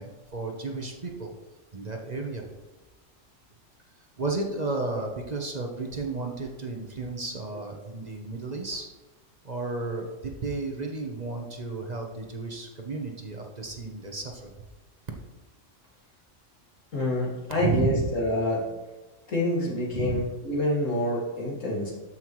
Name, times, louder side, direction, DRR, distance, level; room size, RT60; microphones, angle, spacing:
voice 1, 0.0-1.3 1.7-2.4 4.2-8.9 9.4-14.5 17.6-18.0 19.9-20.2, right 3 dB, 35° right, 2 dB, 1.0 m, -32 dB
voice 2, 16.9-18.7 19.3-21.9, left 1 dB, 85° left, -4 dB, 2.5 m, -27 dB
13.5 x 5.6 x 3.1 m, 1.2 s
omnidirectional pair, 1.3 m